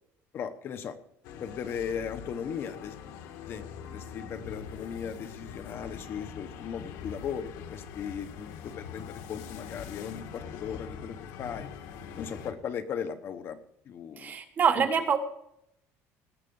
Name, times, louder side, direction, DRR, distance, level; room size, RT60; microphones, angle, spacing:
voice 1, 0.3-1.0 1.4-3.0 3.5-3.6 3.9-11.7 12.2-13.6 13.9-14.3 14.8-14.9, left 7 dB, 40° left, 10 dB, 1.0 m, -37 dB
sound 1, 1.2-12.5, left 7 dB, 75° left, 1.5 m, -43 dB
voice 2, 14.2-15.2, right 6 dB, 30° right, 6 dB, 1.5 m, -25 dB
19.0 x 7.5 x 5.4 m, 0.75 s
cardioid pair, 160°, 6 cm